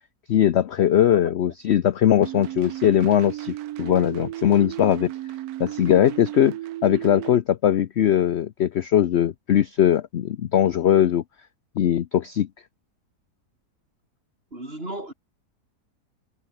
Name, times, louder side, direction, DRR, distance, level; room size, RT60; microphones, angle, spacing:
voice 1, 0.3-5.1 5.6-6.6 6.8-11.2 11.8-12.5, left 10 dB, 60° left, 0.7 m, -20 dB
sound 1, 2.2-7.4, right 14 dB, 75° right, 1.1 m, -34 dB
voice 2, 14.5-15.1, right 1 dB, 35° right, 6.5 m, -35 dB
omnidirectional pair, 1.7 m